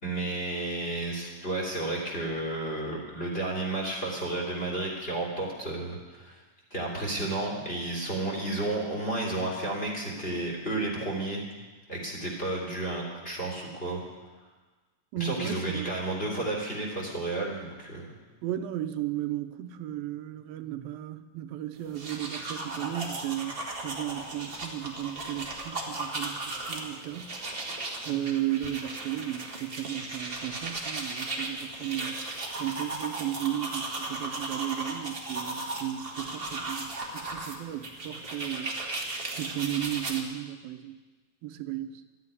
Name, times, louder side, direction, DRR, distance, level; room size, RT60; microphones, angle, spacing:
voice 1, 0.0-6.4 6.7-11.4 11.9-14.0 15.2-18.1, right 2 dB, 15° left, -2 dB, 2.9 m, -32 dB
voice 2, 15.1-15.9 18.4-27.7 28.1-39.0 39.4-41.0 41.4-42.0, right 12 dB, 85° right, 8 dB, 2.6 m, -35 dB
sound 1, 21.8-40.2, right 2 dB, 45° right, 0.7 m, -36 dB
13.0 x 9.5 x 9.6 m, 1.3 s
omnidirectional pair, 4.0 m